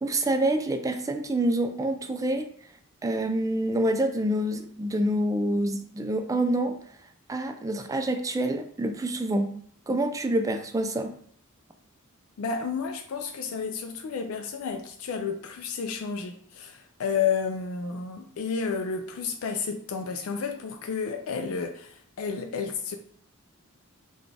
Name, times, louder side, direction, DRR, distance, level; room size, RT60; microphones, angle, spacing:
voice 1, 0.0-2.5 3.0-6.7 7.3-9.5 9.9-11.1, right 1 dB, 15° right, 0.3 m, -27 dB
voice 2, 12.4-22.9, left 6 dB, 70° left, 0.4 m, -31 dB
4.0 x 2.3 x 3.3 m
head